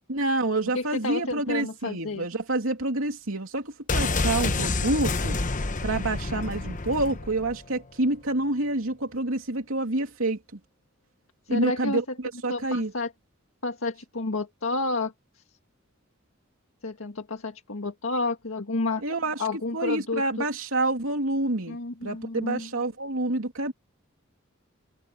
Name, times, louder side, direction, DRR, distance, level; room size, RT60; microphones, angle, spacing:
voice 1, 0.1-5.4 5.8-10.4 11.5-12.0 12.4-12.9 19.0-19.4 19.7-23.7, right 2 dB, 90° right, 3.0 m, -28 dB
voice 2, 0.7-2.3 11.5-12.0 12.5-13.1 13.6-15.1 16.8-19.0 19.4-20.5 21.7-22.7, left 2 dB, 85° left, 1.8 m, -30 dB
sound 1, 3.9-7.7 7.9-8.0, left 3 dB, 40° left, 1.1 m, -28 dB
head